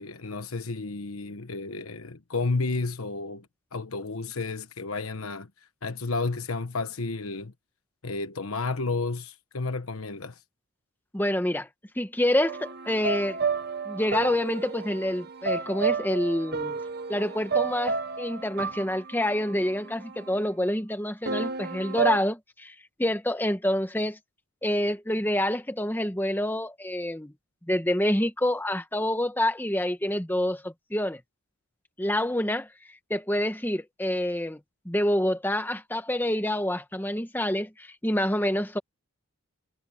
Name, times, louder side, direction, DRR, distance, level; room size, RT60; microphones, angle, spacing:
voice 1, 0.0-3.5 3.7-5.5 5.8-7.5 8.0-10.4, left 3 dB, 80° left, 1.2 m, -31 dB
voice 2, 11.1-11.7 12.0-13.4 13.9-16.8 17.1-24.2 24.6-27.3 27.7-31.2 32.0-32.7 33.1-34.6 34.8-38.8, left 1 dB, 10° left, 1.3 m, -27 dB
sound 1, 12.5-20.5 21.3-22.2, right 5 dB, 45° right, 0.9 m, -31 dB
head